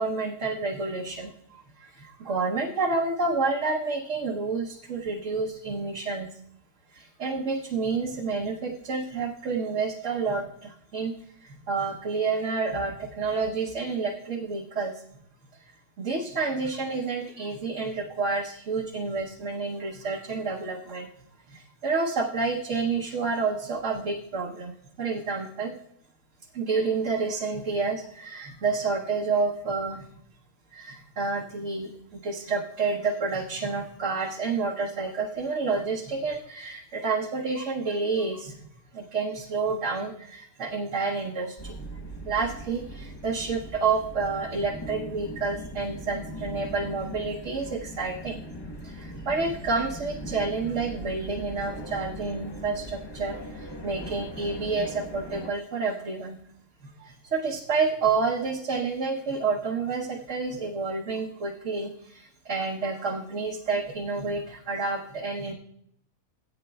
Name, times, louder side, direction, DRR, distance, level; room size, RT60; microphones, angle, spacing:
voice 1, 0.0-6.3 6.9-11.1 11.4-15.0 16.0-21.1 21.5-25.8 26.5-30.1 30.7-38.6 38.9-41.9 42.2-48.5 48.8-56.4 56.8-65.5, right 4 dB, 60° right, -1 dB, 1.3 m, -29 dB
sound 1, 41.6-55.5, equal, 20° left, 0.8 m, -40 dB
17.5 x 9.0 x 2.3 m, 0.71 s
omnidirectional pair, 1.5 m